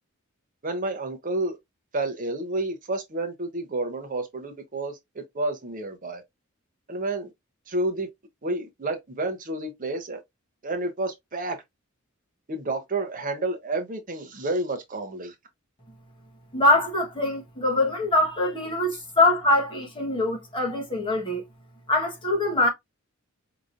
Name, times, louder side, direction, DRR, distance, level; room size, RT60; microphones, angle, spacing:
voice 1, 0.6-1.6 1.9-6.2 6.9-7.3 7.7-8.1 8.4-10.2 10.6-11.6 12.5-15.3 18.9-19.0, right 2 dB, 40° right, 0.8 m, -30 dB
voice 2, 16.5-21.4 21.9-22.7, left 2 dB, 25° left, 1.3 m, -23 dB
5.0 x 2.9 x 2.5 m
head